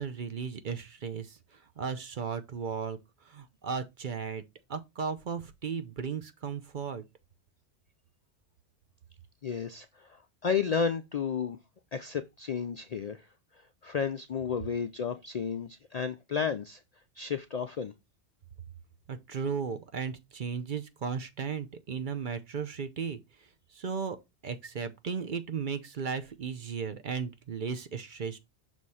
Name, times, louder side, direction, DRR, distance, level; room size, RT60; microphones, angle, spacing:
voice 1, 0.0-1.4 1.8-3.0 3.3-4.4 4.7-7.0 19.1-23.2 23.8-24.2 24.4-28.4, right 6 dB, 50° right, 0.8 m, -35 dB
voice 2, 9.4-11.6 11.9-13.3 13.6-16.8 17.2-17.9, left 6 dB, 55° left, 0.4 m, -32 dB
6.3 x 3.1 x 5.5 m
omnidirectional pair, 1.2 m